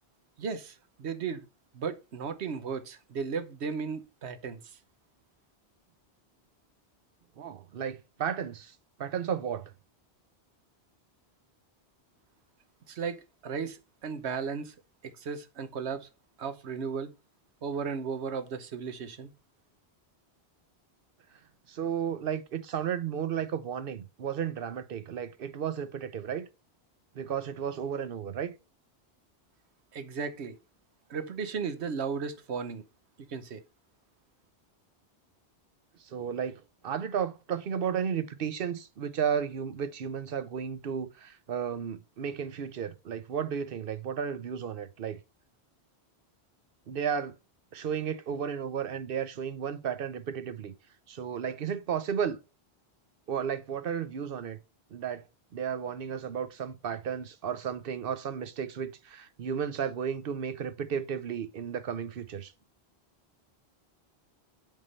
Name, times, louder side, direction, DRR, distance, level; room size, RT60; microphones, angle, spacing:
voice 1, 0.4-1.4 1.7-4.6 12.9-14.7 15.0-16.1 16.4-17.1 17.6-19.3 29.9-30.6 31.1-32.8 33.3-33.6, right 5 dB, 85° right, 1.2 m, -35 dB
voice 2, 7.4-8.7 9.0-9.7 21.7-26.5 27.2-28.5 36.0-45.2 46.9-47.3 47.7-50.7 51.1-52.4 53.3-54.6 54.9-55.2 55.5-62.5, right 8 dB, 60° right, 0.9 m, -33 dB
8.2 x 3.7 x 5.4 m
omnidirectional pair, 1.1 m